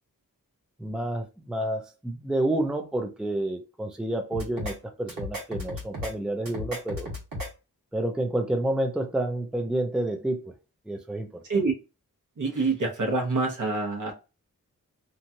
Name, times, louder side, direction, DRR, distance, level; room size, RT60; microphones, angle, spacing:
voice 1, 0.8-7.1 7.9-10.5 10.9-11.4, right 1 dB, ahead, 0.5 m, -29 dB
sound 1, 4.3-4.7 5.1-6.1 6.5-7.5, left 1 dB, 85° right, 1.4 m, -34 dB
voice 2, 12.4-14.1, right 3 dB, 65° right, 1.0 m, -26 dB
3.0 x 2.4 x 2.7 m
wide cardioid pair, 60°, 34 cm